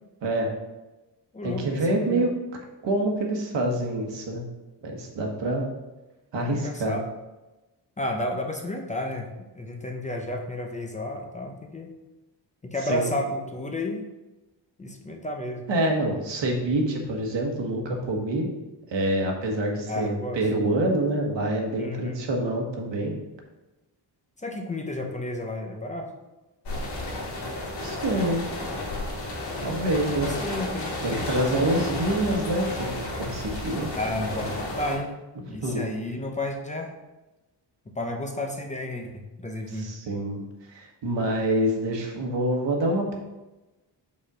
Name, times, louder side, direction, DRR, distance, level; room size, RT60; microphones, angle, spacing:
voice 1, 0.2-0.5 1.4-2.3 2.8-4.4 4.8-5.6 6.3-7.0 12.9-13.1 15.7-18.5 18.9-23.1 27.8-28.4 29.6-30.3 31.0-33.9 35.5-35.8 39.7-40.4 40.7-43.1, right 1 dB, 80° right, 1 dB, 1.5 m, -26 dB
voice 2, 1.3-2.3 6.5-7.0 8.0-11.9 12.6-14.0 14.8-15.7 19.9-20.4 21.8-22.2 24.4-26.1 30.1-31.8 34.0-35.2 35.5-36.9 37.9-39.9, left 1 dB, 15° left, 3 dB, 0.6 m, -32 dB
sound 1, 26.7-35.0, left 1 dB, 70° left, 2.1 m, -32 dB
5.4 x 4.3 x 6.1 m, 1.1 s
wide cardioid pair, 180°, 43 cm